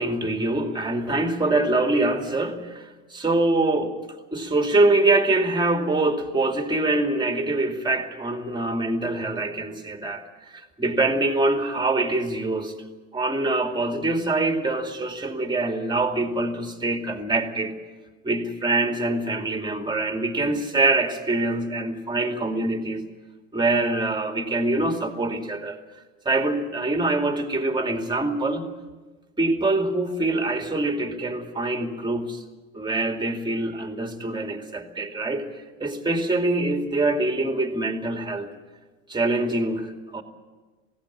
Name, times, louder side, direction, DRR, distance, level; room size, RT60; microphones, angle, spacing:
voice 1, 0.0-4.0 4.3-12.7 13.1-17.7 18.2-23.0 23.5-25.8 26.2-28.7 29.4-32.4 32.7-38.5 39.1-40.2, right 2 dB, 10° right, 4 dB, 2.5 m, -24 dB
19.0 x 17.0 x 9.7 m, 1.3 s
supercardioid pair, 110°, 37 cm